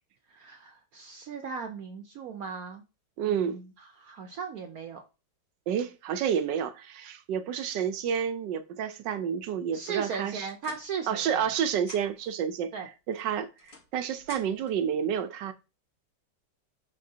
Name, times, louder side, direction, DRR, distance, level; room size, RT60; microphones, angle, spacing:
voice 1, 0.3-2.8 3.2-3.6 4.0-5.0 9.7-11.5 12.7-12.9, right 6 dB, 65° right, 1.1 m, -37 dB
voice 2, 3.2-3.6 5.7-10.5 11.1-12.7 13.1-15.5, right 8 dB, 90° right, 1.4 m, -30 dB
sound 1, 10.1-11.5 11.7-12.4 13.1-14.8, left 3 dB, 85° left, 2.3 m, -51 dB
11.0 x 3.6 x 2.8 m
omnidirectional pair, 1.9 m